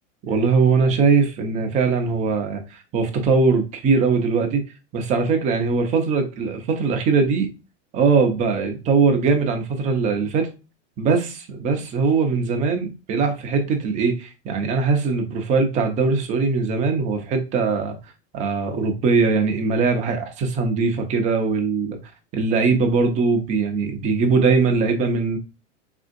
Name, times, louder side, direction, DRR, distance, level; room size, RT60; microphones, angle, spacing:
voice 1, 0.2-4.6 4.9-7.5 7.9-10.5 11.0-17.9 18.3-22.0 22.3-25.4, right 4 dB, 20° right, 0.5 m, -21 dB
3.6 x 2.6 x 2.5 m
supercardioid pair, 140°, 37 cm